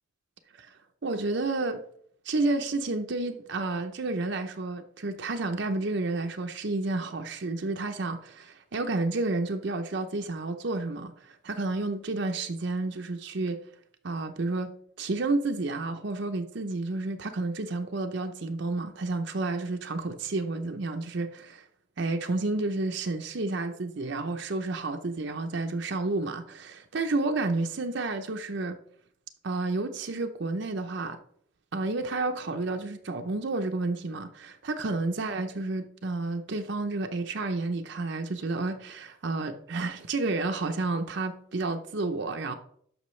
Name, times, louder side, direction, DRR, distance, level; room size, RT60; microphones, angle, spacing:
voice 1, 1.0-1.8 2.2-13.6 14.0-14.7 15.0-21.6 22.0-28.8 29.4-31.2 31.7-42.6, right 3 dB, 60° right, 0.6 m, -30 dB
12.0 x 5.7 x 3.2 m
head